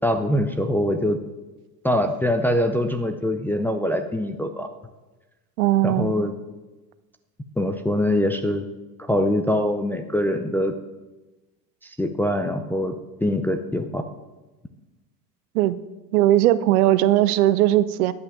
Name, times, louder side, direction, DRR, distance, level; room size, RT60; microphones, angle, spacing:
voice 1, 0.0-1.2 1.8-4.7 5.8-6.3 7.6-8.6 9.0-10.7 11.8-12.9 13.2-14.0, left 1 dB, 5° left, 5 dB, 0.4 m, -23 dB
voice 2, 5.6-6.1 15.5-15.8 16.1-18.1, right 14 dB, 60° right, 15 dB, 0.7 m, -18 dB
11.0 x 5.8 x 7.3 m, 1.1 s
hypercardioid pair, 90°, 49 cm